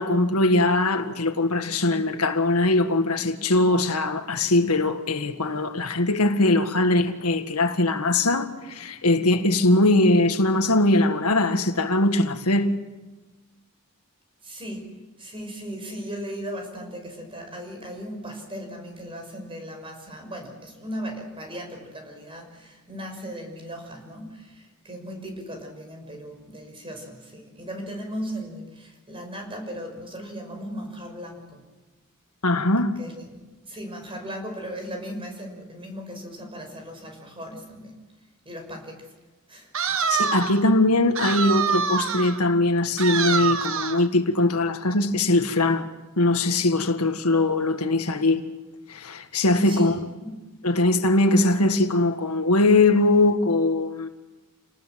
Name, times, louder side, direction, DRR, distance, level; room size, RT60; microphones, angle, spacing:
voice 1, 0.0-12.8 32.4-32.9 40.1-45.9 46.2-48.4 48.9-50.0 50.6-54.1, left 2 dB, 85° left, 1.8 m, -21 dB
voice 2, 14.4-14.9 15.2-31.6 33.0-38.0 38.4-39.1 39.5-40.0 49.7-50.4, equal, 25° right, 6.0 m, -37 dB
sound 1, 39.7-40.6 41.2-42.4 43.0-44.1, right 6 dB, 65° right, 1.4 m, -25 dB
29.5 x 19.5 x 7.7 m
head